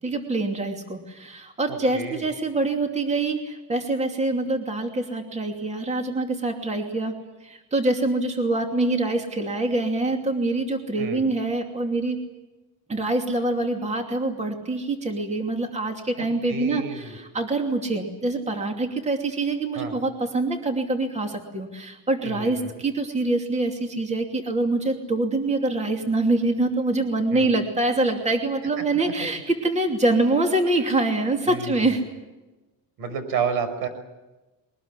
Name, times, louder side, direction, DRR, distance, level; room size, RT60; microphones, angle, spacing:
voice 1, 0.0-7.1 7.4-12.2 12.9-32.0, right 2 dB, 20° right, 4 dB, 2.7 m, -25 dB
voice 2, 1.7-2.2 11.0-11.2 16.2-17.2 19.7-20.0 22.2-22.7 27.3-27.5 31.5-32.0 33.0-33.9, right 6 dB, 75° right, 10 dB, 5.3 m, -31 dB
22.5 x 19.5 x 9.9 m, 1.1 s
cardioid pair, 150°, 36 cm